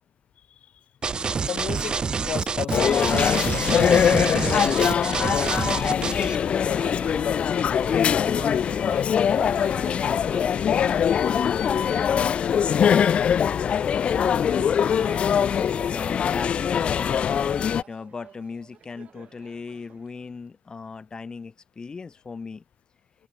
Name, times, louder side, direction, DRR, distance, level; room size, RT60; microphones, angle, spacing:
sound 1, 1.0-6.4, right 5 dB, 45° right, 0.7 m, -27 dB
voice 1, 1.4-3.6 4.3-6.1 6.6-8.6 8.9-9.3 10.5-11.4 11.9-13.8, left 9 dB, 85° left, 1.3 m, -32 dB
sound 2, 2.7-17.8, left 8 dB, 65° left, 0.4 m, -22 dB
Laughter, 5.4-20.4, right 8 dB, 75° right, 6.0 m, -47 dB
voice 2, 15.2-22.6, left 4 dB, 40° left, 6.2 m, -38 dB
wide cardioid pair, 110°, 2 cm